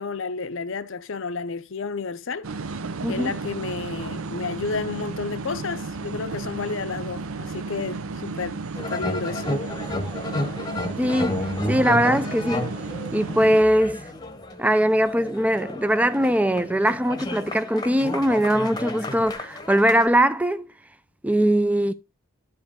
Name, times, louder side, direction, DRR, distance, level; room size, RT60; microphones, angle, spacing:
voice 1, 0.0-2.5 3.1-9.5, left 4 dB, 55° left, 0.6 m, -31 dB
sound 1, 2.4-13.6, right 3 dB, 65° right, 0.6 m, -33 dB
sound 2, 8.8-20.1, left 1 dB, 20° left, 0.9 m, -32 dB
voice 2, 11.0-11.3 11.7-12.7 13.1-14.0 14.6-20.7 21.2-21.9, equal, 5° right, 0.3 m, -21 dB
11.5 x 5.1 x 3.6 m
head